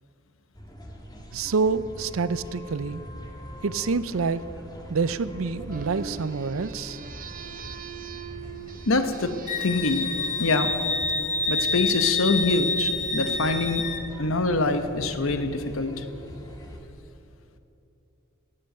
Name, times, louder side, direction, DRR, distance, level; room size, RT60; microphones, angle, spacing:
sound 1, 0.5-16.8, equal, 20° left, 1.6 m, -43 dB
voice 1, 1.3-3.0 3.6-4.4 4.9-7.0, right 4 dB, 80° right, 15 dB, 0.5 m, -27 dB
sound 2, 5.7-11.7, right 6 dB, 40° right, 0.7 m, -42 dB
voice 2, 8.9-9.4 9.6-10.1 10.4-10.8 11.5-13.8 14.2-16.0, left 3 dB, 75° left, 9 dB, 1.0 m, -24 dB
Wind instrument woodwind instrument, 9.5-14.0, left 3 dB, 35° left, 1.0 m, -27 dB
18.0 x 7.7 x 7.8 m, 2.8 s
head